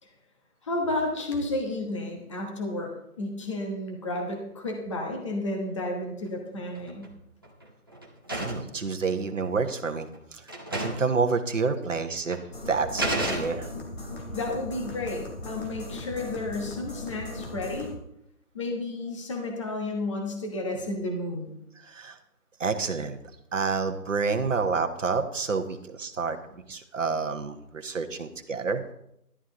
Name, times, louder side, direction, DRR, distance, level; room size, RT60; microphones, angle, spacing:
voice 1, 0.6-7.1 14.3-17.9 18.5-21.5, left 2 dB, 20° left, 1 dB, 1.2 m, -32 dB
sound 1, 6.5-7.1 7.4-8.8 9.7-9.8 10.1-10.2 10.5-11.2 11.4-11.5 12.3-12.4 13.0-13.9, right 1 dB, 15° right, 0.8 m, -32 dB
voice 2, 8.4-10.4 10.7-12.4 12.7-13.7 21.8-22.2 22.6-23.2 23.5-28.8, right 4 dB, 55° right, 5 dB, 1.4 m, -29 dB
sound 2, 12.5-18.0, left 1 dB, 40° left, 3.1 m, -38 dB
12.5 x 11.5 x 3.9 m, 0.78 s
figure-of-eight pair, 160°, 45 cm